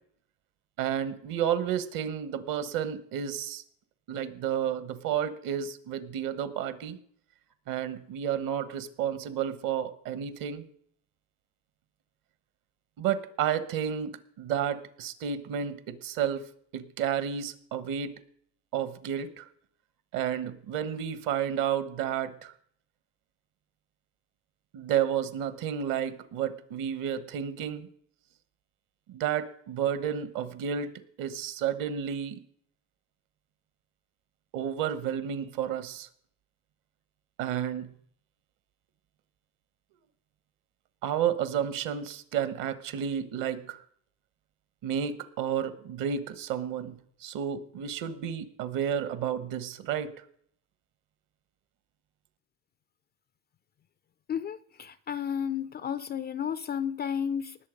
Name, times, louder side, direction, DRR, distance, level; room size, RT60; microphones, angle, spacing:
voice 1, 0.8-3.6 4.1-7.0 7.7-10.6 13.0-16.5 16.7-18.2 18.7-19.4 20.1-22.5 24.7-27.9 29.1-32.4 34.5-36.1 37.4-37.9 41.0-43.8 44.8-50.1, right 9 dB, 60° right, 13 dB, 1.3 m, -31 dB
voice 2, 54.3-57.6, left 8 dB, 25° left, 15 dB, 0.4 m, -32 dB
19.5 x 6.9 x 5.2 m, 0.63 s
supercardioid pair, 110°, 38 cm